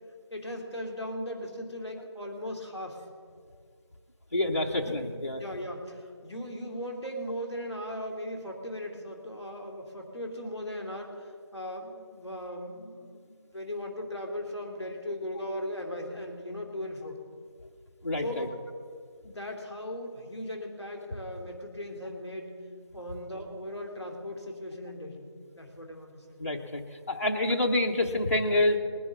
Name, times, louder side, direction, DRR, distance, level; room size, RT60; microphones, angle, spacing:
voice 1, 0.3-3.0 4.8-17.2 18.2-18.5 19.2-22.6 22.9-25.3 25.5-26.4, left 1 dB, 5° right, -15 dB, 1.4 m, -38 dB
voice 2, 4.3-5.4 18.0-18.5 26.4-26.8 27.1-28.8, left 1 dB, 30° left, -2 dB, 0.9 m, -27 dB
20.0 x 10.5 x 3.7 m, 2.1 s
figure-of-eight pair, 180°, 14 cm